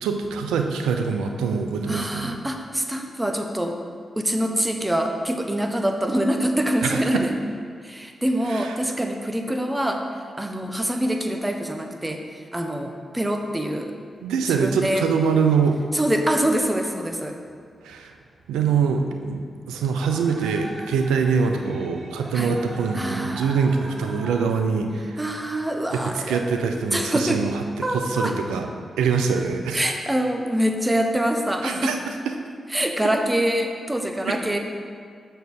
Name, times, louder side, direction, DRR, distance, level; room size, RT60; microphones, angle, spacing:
voice 1, 0.0-2.4 6.8-7.2 8.5-8.8 14.2-15.8 17.8-18.1 18.5-19.4 19.7-25.2 25.9-28.7 29.0-29.8 31.6-32.0 34.3-34.4, right 5 dB, 90° right, 5 dB, 0.5 m, -24 dB
voice 2, 1.9-3.8 4.2-7.3 7.8-10.0 10.4-12.2 12.5-13.9 14.5-15.0 15.9-17.3 22.3-22.6 22.9-23.5 25.2-26.4 26.9-27.4 27.8-28.3 29.7-31.9 32.7-34.6, right 1 dB, 15° right, 4 dB, 1.0 m, -25 dB
sound 1, 14.1-24.4, right 2 dB, 55° right, 1.3 m, -43 dB
6.6 x 4.5 x 6.4 m, 2.1 s
supercardioid pair, 40°, 0 cm